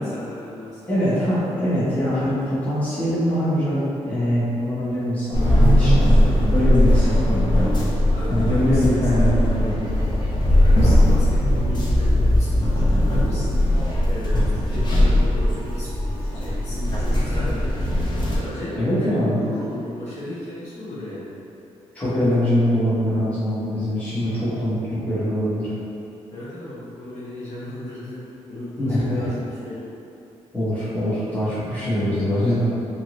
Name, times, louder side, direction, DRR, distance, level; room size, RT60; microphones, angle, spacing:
voice 1, 0.0-1.7 8.1-9.3 10.5-21.3 26.3-29.9, left 1 dB, 70° left, -10 dB, 1.1 m, -35 dB
voice 2, 0.9-7.5 8.3-9.9 18.7-19.4 21.9-25.7 28.8-29.3 30.5-32.7, equal, 15° left, -12 dB, 1.1 m, -23 dB
sound 1, 5.3-18.4, left 1 dB, 40° left, 0.6 m, -19 dB
2.8 x 2.6 x 3.0 m, 2.6 s
cardioid pair, 115°, 12 cm